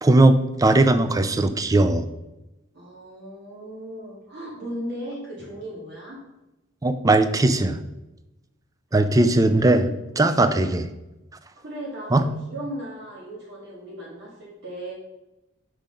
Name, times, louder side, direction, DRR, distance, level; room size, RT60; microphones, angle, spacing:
voice 1, 0.0-2.1 6.8-7.8 8.9-9.9 10.2-10.9 12.1-12.3, right 2 dB, 15° right, 10 dB, 0.4 m, -18 dB
voice 2, 2.7-6.2 9.0-9.1 9.6-10.2 10.4-10.6 11.6-14.9, equal, 55° right, -5 dB, 2.0 m, -37 dB
5.8 x 4.9 x 5.1 m, 0.97 s
head